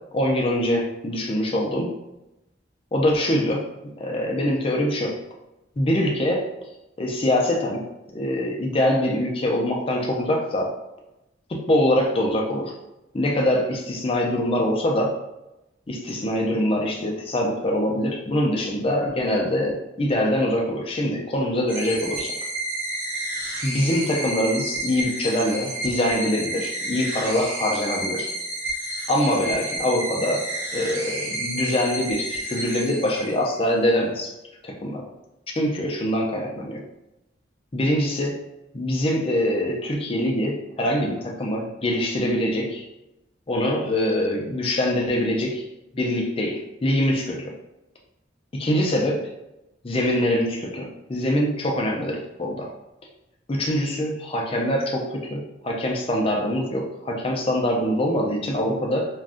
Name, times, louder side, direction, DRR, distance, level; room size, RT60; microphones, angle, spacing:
voice 1, 0.1-1.9 2.9-3.6 4.0-5.2 5.8-6.5 7.0-7.9 8.1-10.7 11.5-12.7 13.1-15.1 15.9-22.3 23.6-28.3 29.1-34.4 34.6-35.1 35.5-36.8 37.7-38.4 38.7-42.9 43.5-45.6 45.9-47.5 48.5-49.2 49.8-52.7 53.5-59.1, left 1 dB, 30° left, 0 dB, 0.5 m, -24 dB
sound 1, 21.7-33.6, right 1 dB, 10° right, 0.6 m, -30 dB
2.5 x 2.2 x 3.5 m, 0.93 s
head